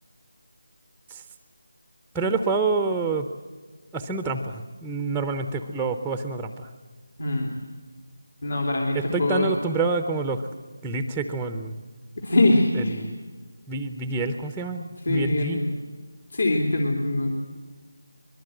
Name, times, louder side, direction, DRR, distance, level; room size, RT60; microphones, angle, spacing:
voice 1, 2.1-3.3 3.9-6.7 8.9-10.4 10.8-11.8 12.8-13.2 13.7-15.6, right 4 dB, 5° right, 7 dB, 0.7 m, -27 dB
voice 2, 8.4-9.5 12.2-13.0 15.0-15.8 16.3-17.3, left 2 dB, 65° left, 1 dB, 3.3 m, -23 dB
23.0 x 22.0 x 7.9 m, 1.4 s
figure-of-eight pair, 165°, 0 cm